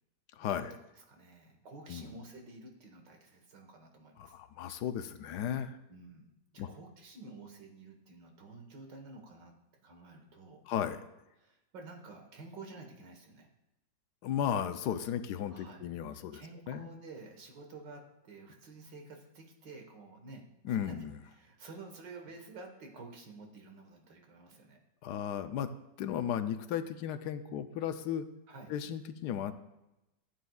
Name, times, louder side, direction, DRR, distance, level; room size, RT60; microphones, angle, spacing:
voice 1, 0.4-0.8 1.9-2.1 4.2-5.8 6.6-6.7 10.7-11.0 14.2-16.4 16.7-16.9 20.6-21.2 25.0-25.7 26.0-28.2 28.7-29.5, left 9 dB, 75° left, 10 dB, 1.1 m, -35 dB
voice 2, 1.0-4.4 5.5-5.6 5.9-9.5 9.8-10.6 11.4-13.5 15.5-15.8 16.3-24.8 28.5-28.7, right 3 dB, 70° right, 3 dB, 2.0 m, -51 dB
14.0 x 9.4 x 2.4 m, 0.93 s
omnidirectional pair, 2.0 m